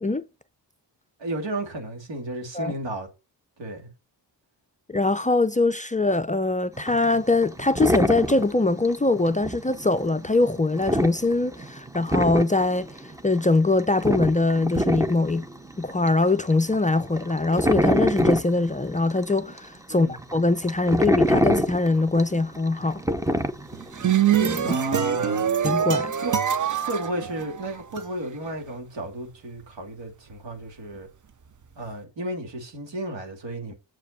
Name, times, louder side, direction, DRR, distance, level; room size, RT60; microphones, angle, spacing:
voice 1, 1.2-3.1 3.6-3.9 19.9-20.2 24.6-25.4 26.2-26.3 26.8-31.1 31.8-33.7, right 1 dB, 90° right, 2.7 m, -33 dB
voice 2, 4.9-12.9 13.2-15.5 15.8-23.0 24.4-24.8 25.6-26.1, left 2 dB, 20° left, 0.4 m, -22 dB
sound 1, 6.8-19.7 20.1-24.9, equal, 10° right, 0.7 m, -26 dB
sound 2, 23.7-28.0, right 8 dB, 45° right, 0.7 m, -24 dB
7.6 x 5.1 x 6.6 m
wide cardioid pair, 120°, 43 cm